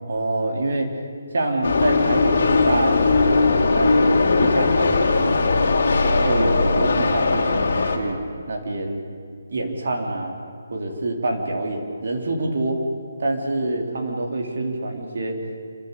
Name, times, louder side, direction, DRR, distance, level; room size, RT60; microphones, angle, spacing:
voice 1, 0.1-0.9 1.3-4.1 4.4-5.5 6.1-8.2 8.5-9.0 9.5-10.4 10.7-12.8 13.2-15.4, right 2 dB, 60° right, 2 dB, 3.7 m, -26 dB
sound 1, 1.6-8.0, left 3 dB, 60° left, 2.8 m, -19 dB
27.5 x 13.0 x 8.5 m, 2.2 s
hypercardioid pair, 170°, 0 cm